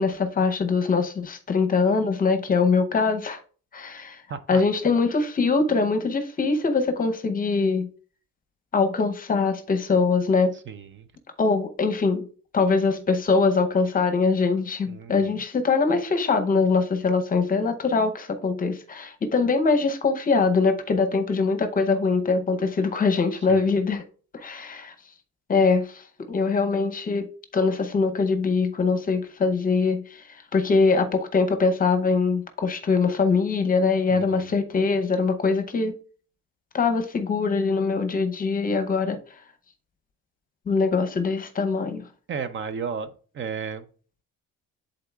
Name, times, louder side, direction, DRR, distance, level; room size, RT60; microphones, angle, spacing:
voice 1, 0.0-3.4 3.7-4.2 4.5-7.9 8.7-10.5 11.4-12.2 12.5-24.0 24.3-24.9 25.5-27.3 27.5-30.2 30.5-35.9 36.7-39.2 40.7-42.0, left 4 dB, 30° left, 0.7 m, -23 dB
voice 2, 4.3-4.6 10.7-11.1 14.9-15.4 23.5-23.7 34.1-34.5 42.3-43.9, right 6 dB, 40° right, 0.5 m, -34 dB
11.0 x 3.8 x 2.3 m
cardioid pair, 145°, 31 cm